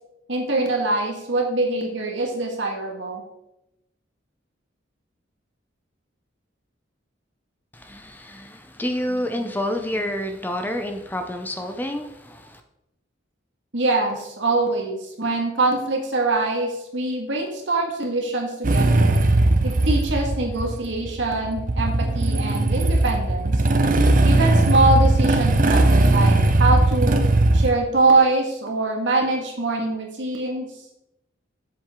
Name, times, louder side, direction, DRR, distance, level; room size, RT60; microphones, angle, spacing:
voice 1, 0.3-3.2 13.7-19.1 19.6-23.5 24.2-27.2 27.5-30.7, right 2 dB, 70° right, 1.8 m, -23 dB
voice 2, 7.9-12.1, left 1 dB, 10° left, 0.5 m, -28 dB
Motorcycle / Engine starting, 18.6-27.7, right 2 dB, 40° right, 0.6 m, -18 dB
7.4 x 7.4 x 3.7 m
head